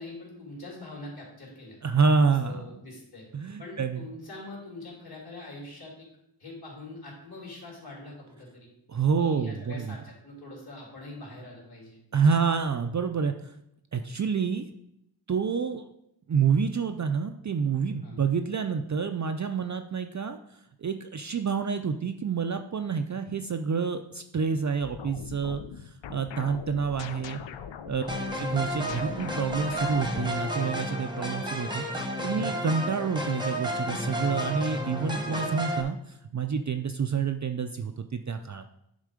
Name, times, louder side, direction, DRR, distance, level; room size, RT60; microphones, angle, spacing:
voice 1, 0.0-1.8 2.5-3.2 3.6-6.1 6.4-8.7 9.2-12.0 18.0-18.2 27.9-28.2 32.3-32.5, left 2 dB, 50° left, -3 dB, 3.2 m, -43 dB
voice 2, 1.8-2.6 3.3-4.0 8.9-9.9 12.1-13.3 13.9-14.6 15.3-15.9 16.3-20.4 20.8-25.6 26.1-27.4 27.9-28.0 28.4-31.9 32.2-36.0 36.3-38.6, right 5 dB, 40° right, 7 dB, 0.4 m, -28 dB
sound 1, 24.8-31.0, left 8 dB, 65° left, 0.6 m, -42 dB
sound 2, 28.1-35.8, equal, 10° right, 0.9 m, -32 dB
10.0 x 3.7 x 5.0 m, 0.79 s
wide cardioid pair, 130°, 47 cm